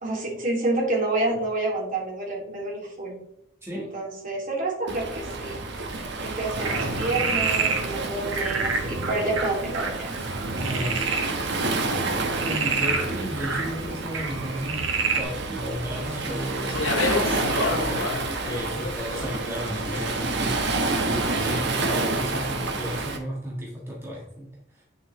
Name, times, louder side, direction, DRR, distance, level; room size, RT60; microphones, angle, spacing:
voice 1, 0.0-3.1 3.7-5.7 6.2-10.1, right 2 dB, 45° right, -2 dB, 2.8 m, -28 dB
Waves surf, 4.9-23.2, right 3 dB, 60° right, 1.3 m, -29 dB
Frog, 6.6-15.2, right 4 dB, 85° right, 1.4 m, -29 dB
voice 2, 10.6-11.2 12.0-14.8 15.2-24.8, equal, 15° right, -4 dB, 1.6 m, -34 dB
Speech, 16.0-20.4, left 4 dB, 80° left, 0.7 m, -31 dB
9.4 x 6.5 x 3.3 m, 0.73 s
head